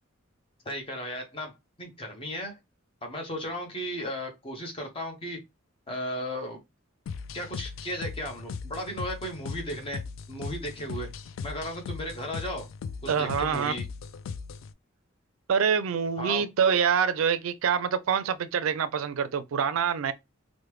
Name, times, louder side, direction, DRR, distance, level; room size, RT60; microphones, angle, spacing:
voice 1, 0.6-1.5 1.8-2.6 3.0-5.4 5.9-6.6 7.3-11.1 11.4-12.7 13.0-13.8 16.2-16.5, equal, 30° left, 0.9 m, -35 dB
sound 1, 7.1-14.7, left 5 dB, 70° left, 0.3 m, -38 dB
voice 2, 13.1-13.7 15.5-20.1, right 7 dB, 85° right, 0.4 m, -25 dB
3.2 x 2.1 x 3.1 m
head